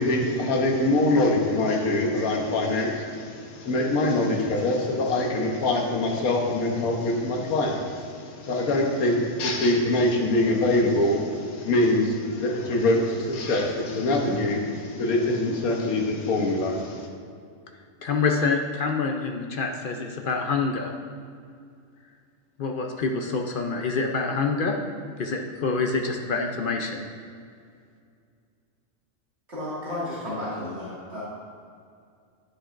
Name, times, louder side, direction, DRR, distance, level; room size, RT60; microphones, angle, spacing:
voice 1, 0.0-17.1, left 2 dB, 85° left, 0 dB, 1.4 m, -24 dB
voice 2, 18.0-20.9 22.6-24.7 25.2-27.0, left 4 dB, 60° left, 3 dB, 0.5 m, -26 dB
voice 3, 29.5-31.2, left 1 dB, 50° right, -10 dB, 2.3 m, -33 dB
10.0 x 7.6 x 2.5 m, 2.3 s
omnidirectional pair, 1.5 m